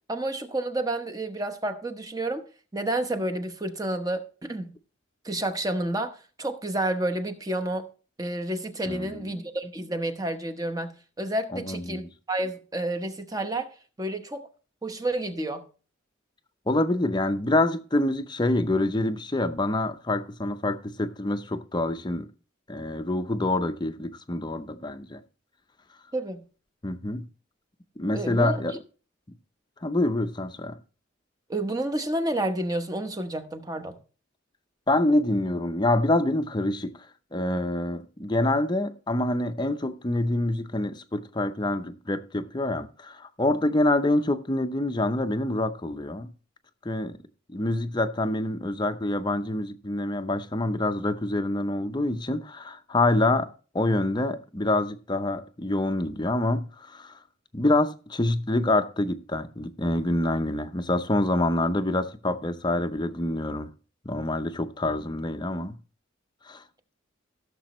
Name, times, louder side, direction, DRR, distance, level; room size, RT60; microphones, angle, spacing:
voice 1, 0.1-2.4 2.7-4.7 5.2-7.9 8.2-12.0 12.3-13.7 14.0-14.5 14.8-15.7 26.1-26.5 28.1-28.6 31.5-34.0, right 1 dB, 20° right, 0.9 m, -30 dB
voice 2, 8.9-9.4 11.5-12.1 16.7-22.3 22.7-25.2 26.8-27.2 28.0-28.7 29.8-30.8 34.9-46.3 46.8-47.2 47.5-53.5 53.7-57.2 57.5-63.7 64.0-65.8 66.4-66.6, left 2 dB, 20° left, 0.6 m, -26 dB
16.5 x 6.9 x 3.1 m
head